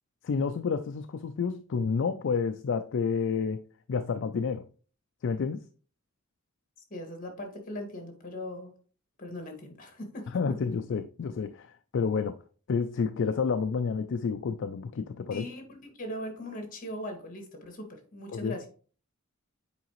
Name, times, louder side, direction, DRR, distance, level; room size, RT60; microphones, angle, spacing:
voice 1, 0.2-3.6 3.9-4.7 5.2-5.6 10.3-12.4 12.7-15.4 18.3-18.5, left 5 dB, 60° left, 0.4 m, -29 dB
voice 2, 6.9-8.7 9.2-10.3 15.3-18.7, left 1 dB, 40° left, 1.9 m, -39 dB
8.2 x 4.9 x 3.0 m
head